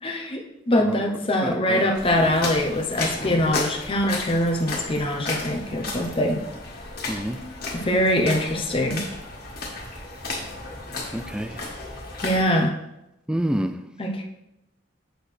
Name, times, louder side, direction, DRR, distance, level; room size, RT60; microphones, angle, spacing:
voice 1, 0.0-0.4 0.7-6.4 7.7-9.0 12.2-12.7 14.0-14.2, left 1 dB, 25° left, 1 dB, 0.8 m, -23 dB
voice 2, 0.9-1.9 7.1-7.4 11.1-11.6 13.3-13.8, equal, 5° right, 9 dB, 0.3 m, -28 dB
sound 1, 1.9-12.4, left 2 dB, 50° left, 1.7 m, -33 dB
7.8 x 6.2 x 3.3 m, 0.88 s
head